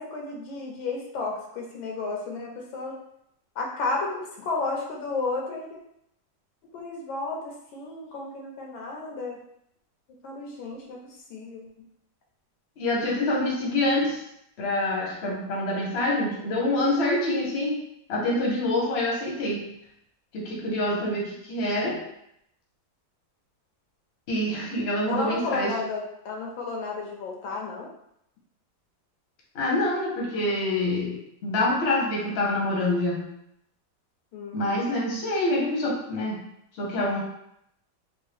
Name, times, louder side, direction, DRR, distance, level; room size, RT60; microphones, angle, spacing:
voice 1, 0.0-3.0 3.5-5.8 6.7-9.4 10.2-11.7 25.1-27.9 34.3-35.0, left 3 dB, 85° left, 0 dB, 1.5 m, -32 dB
voice 2, 12.8-14.2 14.6-17.8 18.1-19.7 20.3-22.0 24.3-25.7 29.5-33.3 34.5-36.4 36.8-37.2, left 1 dB, 45° left, -3 dB, 0.9 m, -26 dB
3.5 x 2.3 x 3.3 m, 0.75 s
omnidirectional pair, 2.1 m